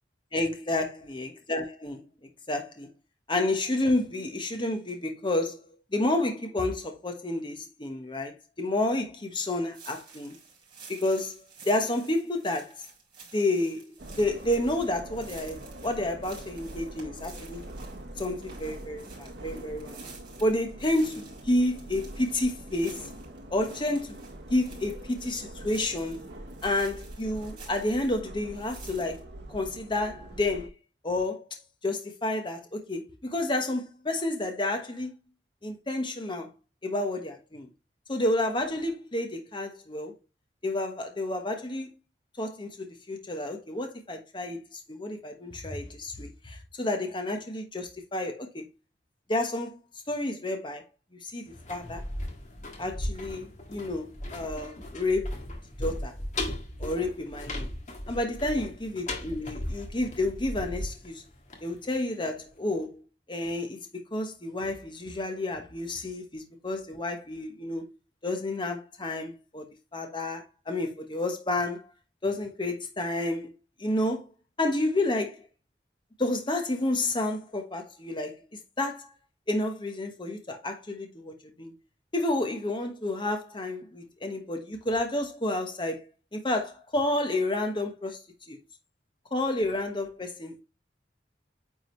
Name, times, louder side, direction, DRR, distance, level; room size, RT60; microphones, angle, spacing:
voice 1, 0.3-2.9 3.3-5.7 5.9-10.3 10.9-12.9 13.3-13.9 14.1-17.6 18.2-20.0 20.4-23.1 23.5-24.2 24.5-26.2 26.6-29.2 29.5-30.7 31.0-35.2 35.6-36.5 36.8-37.7 38.1-40.1 40.6-41.9 42.4-48.7 49.3-49.8 50.1-50.9 51.2-52.0 52.8-55.3 55.8-56.1 56.8-57.7 58.1-61.2 61.6-63.0 63.3-63.8 64.1-67.9 68.2-69.6 69.9-71.8 72.2-73.5 73.8-74.2 74.6-75.4 76.2-78.4 78.8-79.1 79.5-81.7 82.1-86.0 86.3-88.2 88.5-88.6 89.3-90.6, left 1 dB, 25° left, 1.2 m, -30 dB
sound 1, 9.7-28.2 28.5-29.2, right 5 dB, 30° right, 3.9 m, -51 dB
sound 2, 14.0-30.7, right 1 dB, 65° right, 1.2 m, -44 dB
sound 3, 51.5-62.3 62.6-62.7, left 1 dB, 45° left, 1.7 m, -37 dB
9.3 x 3.9 x 3.2 m
head